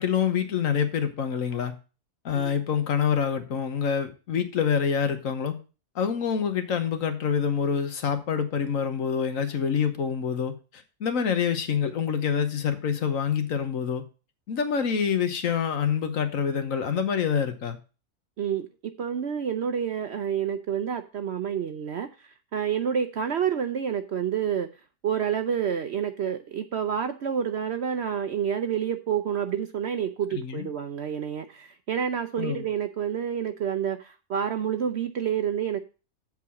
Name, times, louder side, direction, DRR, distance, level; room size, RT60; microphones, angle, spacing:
voice 1, 0.0-1.7 2.2-5.6 5.9-14.0 14.5-17.8 30.3-30.7 32.4-32.6, left 7 dB, 65° left, 1.3 m, -26 dB
voice 2, 19.0-24.7 25.0-35.8, right 8 dB, 60° right, 0.7 m, -28 dB
7.8 x 4.7 x 7.0 m
omnidirectional pair, 1.6 m